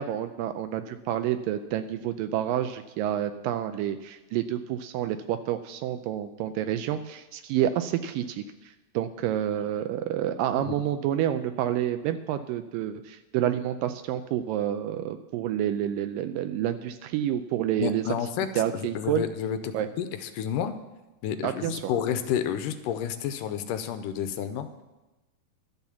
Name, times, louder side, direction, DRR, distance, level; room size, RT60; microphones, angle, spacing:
voice 1, 0.0-8.4 8.9-18.1 18.6-19.2 19.7-19.9 21.4-21.8, right 11 dB, 85° right, 9 dB, 2.2 m, -29 dB
voice 2, 17.8-18.5 18.7-20.7 21.2-24.8, left 9 dB, 80° left, 10 dB, 2.1 m, -30 dB
12.0 x 7.2 x 7.1 m, 1.1 s
omnidirectional pair, 4.0 m